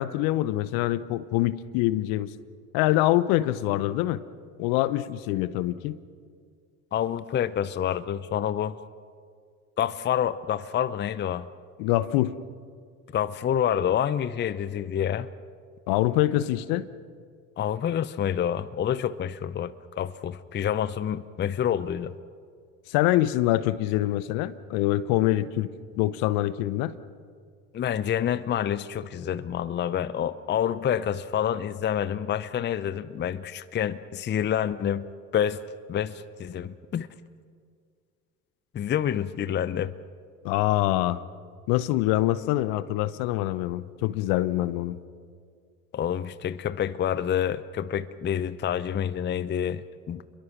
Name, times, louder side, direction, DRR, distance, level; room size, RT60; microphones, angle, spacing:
voice 1, 0.0-2.3 2.7-4.2 4.6-6.0 11.8-12.4 15.9-16.9 22.9-25.7 26.0-26.9 40.4-41.2 41.7-45.0, left 15 dB, 55° left, 16 dB, 0.9 m, -25 dB
voice 2, 6.9-8.8 9.8-11.5 13.1-15.3 17.6-22.1 27.7-35.1 35.3-35.6 35.9-37.1 38.7-39.9 45.9-50.2, left 9 dB, 25° left, 15 dB, 0.7 m, -28 dB
28.0 x 22.5 x 6.1 m, 2.1 s
hypercardioid pair, 75°, 42 cm